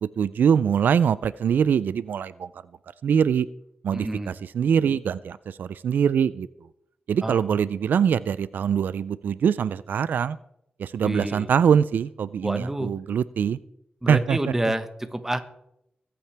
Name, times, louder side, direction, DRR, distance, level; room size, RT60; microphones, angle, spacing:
voice 1, 0.0-2.5 3.0-3.5 3.8-6.5 7.1-10.4 10.8-13.6 14.1-14.4, right 7 dB, 85° right, 17 dB, 0.4 m, -23 dB
voice 2, 3.9-4.4 7.2-7.6 11.0-11.5 12.4-12.9 14.0-15.4, right 1 dB, 10° right, 9 dB, 1.1 m, -28 dB
23.5 x 8.7 x 3.4 m, 0.79 s
wide cardioid pair, 110°, 3 cm